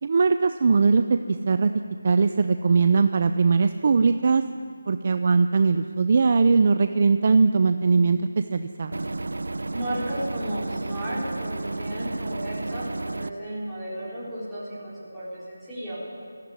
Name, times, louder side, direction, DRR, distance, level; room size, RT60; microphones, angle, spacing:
voice 1, 0.0-1.2 1.5-1.7 2.0-4.4 4.9-8.2 8.5-8.9, right 4 dB, 25° right, 9 dB, 0.5 m, -20 dB
sound 1, 8.9-13.3, right 2 dB, 65° right, 0.7 m, -32 dB
voice 2, 9.7-16.0, right 1 dB, ahead, -14 dB, 4.5 m, -34 dB
20.0 x 14.5 x 9.7 m, 2.2 s
figure-of-eight pair, 180°, 0 cm